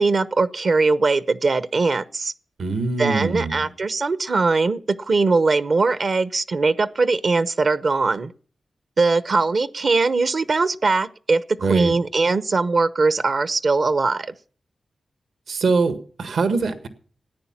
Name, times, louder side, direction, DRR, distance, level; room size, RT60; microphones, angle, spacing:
voice 1, 0.0-2.3 3.0-8.3 9.0-14.3, right 3 dB, 60° right, 0.8 m, -21 dB
voice 2, 2.6-3.7 11.6-11.9 15.5-16.9, right 4 dB, 85° right, 1.6 m, -23 dB
14.0 x 9.6 x 7.3 m
cardioid pair, 55°, 0 cm